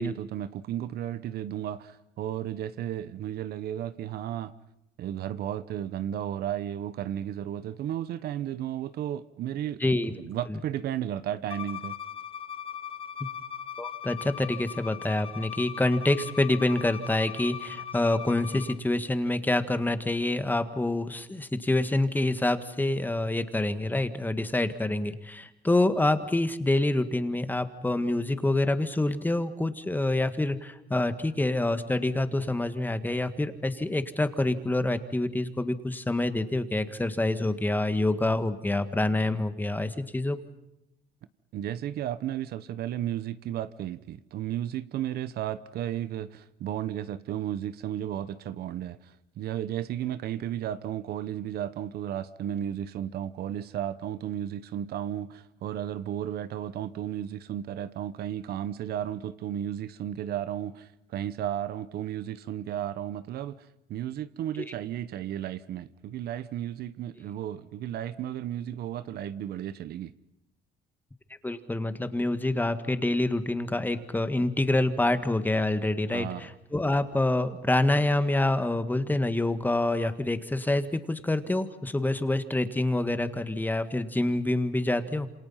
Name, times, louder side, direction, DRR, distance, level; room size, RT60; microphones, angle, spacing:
voice 1, 0.0-4.5 5.0-11.9 41.5-70.1 76.1-76.5, right 11 dB, 70° right, 1.1 m, -34 dB
voice 2, 9.8-10.1 13.8-40.4 71.4-85.3, left 2 dB, 10° left, 1.8 m, -27 dB
Bowed string instrument, 11.5-18.8, left 9 dB, 35° left, 1.0 m, -39 dB
27.5 x 27.0 x 5.8 m
cardioid pair, 110°, 17 cm